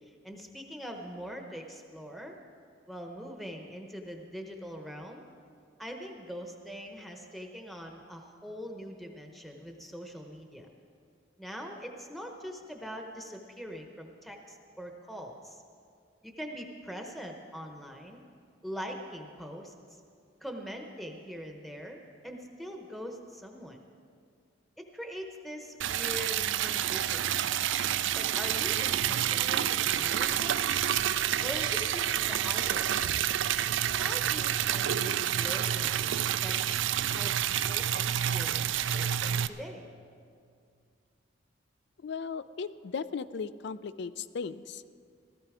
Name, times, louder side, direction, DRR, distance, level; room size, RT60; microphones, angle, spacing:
voice 1, 0.0-2.4 2.9-5.2 5.8-10.7 11.4-15.6 16.2-18.2 18.6-19.7 20.4-23.8 24.8-27.4 28.1-30.6 31.4-33.1 33.9-36.8 37.1-39.9, equal, ahead, 2 dB, 0.9 m, -42 dB
Liquid, 25.8-39.5, right 10 dB, 75° right, 0.4 m, -29 dB
voice 2, 42.0-44.8, left 5 dB, 65° left, 15 dB, 0.4 m, -37 dB
16.5 x 14.0 x 4.9 m, 2.3 s
head